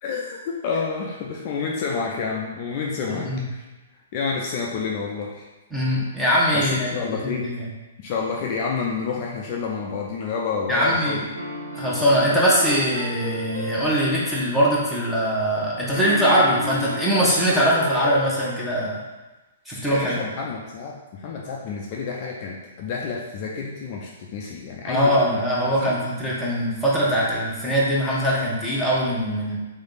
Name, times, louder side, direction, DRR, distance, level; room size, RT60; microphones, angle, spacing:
voice 1, 0.0-3.6 4.1-5.5 6.5-7.5 8.0-11.2 19.9-26.0, left 5 dB, 40° left, -1 dB, 0.6 m, -29 dB
voice 2, 5.7-7.7 10.7-11.2 11.8-18.9 19.7-20.2 24.9-29.6, equal, 5° right, -7 dB, 1.2 m, -22 dB
sound 1, 11.3-15.1 15.9-18.5, left 1 dB, 85° right, 1.2 m, -33 dB
3.5 x 3.4 x 4.0 m, 1.1 s
figure-of-eight pair, 120°, 0 cm